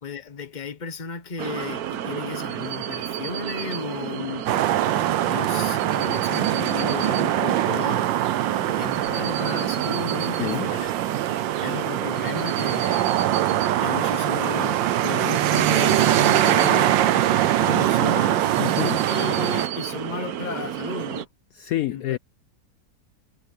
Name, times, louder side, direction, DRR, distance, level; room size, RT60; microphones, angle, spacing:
voice 1, 0.0-4.5 5.3-8.1 8.8-10.9 11.6-13.1 13.8-17.0 17.6-18.4 19.1-21.3 21.9-22.2, left 5 dB, 30° left, 1.1 m, -34 dB
sound 1, 1.4-21.3, right 10 dB, 65° right, 1.1 m, -32 dB
sound 2, 4.5-19.7, right 12 dB, 90° right, 1.5 m, -23 dB
voice 2, 10.4-10.7 18.6-19.1 21.5-22.2, left 13 dB, 70° left, 0.8 m, -28 dB
omnidirectional pair, 2.0 m